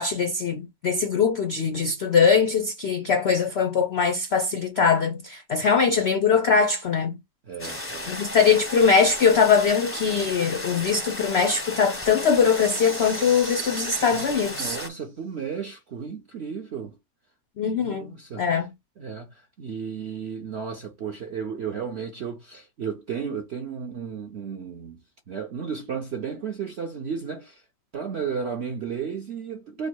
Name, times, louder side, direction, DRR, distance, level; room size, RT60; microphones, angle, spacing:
voice 1, 0.0-7.2 8.1-14.8 17.6-18.7, left 6 dB, 80° left, 0.5 m, -22 dB
voice 2, 7.4-8.2 14.1-17.0 17.8-18.6 19.0-25.0 25.3-27.6 27.9-29.9, right 6 dB, 65° right, 0.6 m, -34 dB
sound 1, 7.6-14.9, left 1 dB, 15° left, 0.5 m, -34 dB
sound 2, 12.4-15.0, right 4 dB, 80° right, 2.1 m, -41 dB
5.0 x 2.1 x 4.5 m
omnidirectional pair, 1.9 m